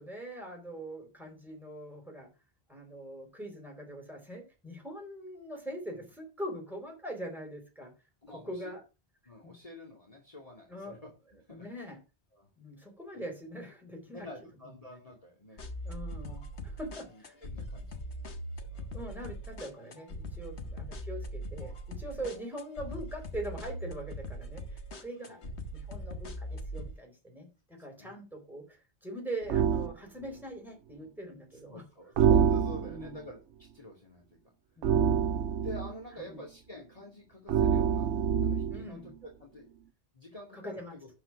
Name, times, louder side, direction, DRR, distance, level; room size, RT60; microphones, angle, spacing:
voice 1, 0.0-2.3 2.7-7.9 8.3-8.8 9.4-9.5 10.7-11.0 11.5-12.0 12.6-14.3 15.8-17.4 18.9-25.4 25.7-31.8 32.8-33.2 34.8-35.3 36.3-36.4 38.7-39.1 40.5-40.9, right 1 dB, ahead, 1 dB, 4.2 m, -42 dB
voice 2, 8.2-8.7 9.3-11.0 11.3-11.7 12.3-12.5 13.1-13.3 14.1-15.6 17.1-18.9 20.5-20.7 22.1-22.3 25.3-25.5 28.0-28.1 31.7-33.4 33.7-34.3 35.4-38.1 38.4-39.7 40.1-41.1, left 1 dB, 35° left, -1 dB, 2.5 m, -47 dB
sound 1, 15.6-26.9, equal, 75° left, 1.6 m, -41 dB
sound 2, 29.5-29.9 32.2-33.1 34.8-35.9 37.5-38.9, right 8 dB, 85° right, 1.0 m, -26 dB
12.0 x 4.8 x 6.0 m, 0.30 s
omnidirectional pair, 1.1 m